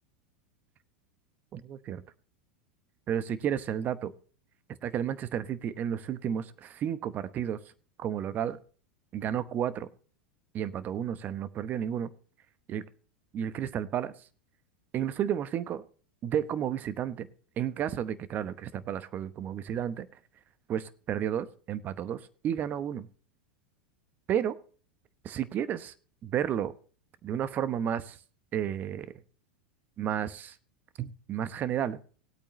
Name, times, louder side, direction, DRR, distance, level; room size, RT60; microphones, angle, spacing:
voice 1, 1.5-2.0 3.1-4.1 4.8-7.6 8.0-8.6 9.1-9.9 10.5-12.1 12.7-12.8 13.3-14.1 14.9-15.8 16.2-17.3 17.6-20.1 20.7-23.1 24.3-24.6 25.2-25.9 26.2-26.7 27.2-28.2 28.5-29.1 30.0-30.5 31.0-32.0, right 9 dB, 35° right, 15 dB, 0.9 m, -32 dB
19.0 x 8.6 x 3.1 m, 0.40 s
hypercardioid pair, 95°, 5 cm